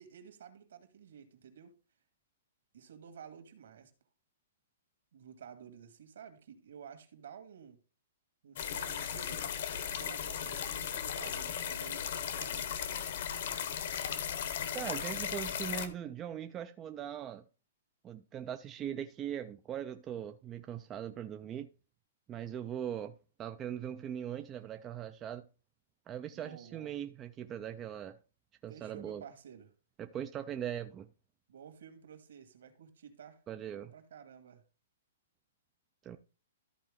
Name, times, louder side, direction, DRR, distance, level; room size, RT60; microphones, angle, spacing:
voice 1, 0.0-1.7 2.7-3.9 5.1-7.8 8.4-9.4 10.0-12.8 26.3-26.9 28.7-29.7 31.5-34.6, right 7 dB, 65° right, 1.9 m, -52 dB
sound 1, 8.6-15.9, left 8 dB, 45° left, 0.9 m, -36 dB
voice 2, 14.7-17.4 18.0-21.7 22.3-25.4 26.1-28.2 28.6-29.2 30.0-31.1 33.5-33.9 36.0-36.2, right 9 dB, 15° right, 0.3 m, -40 dB
13.5 x 4.5 x 3.6 m
hypercardioid pair, 180°, 0 cm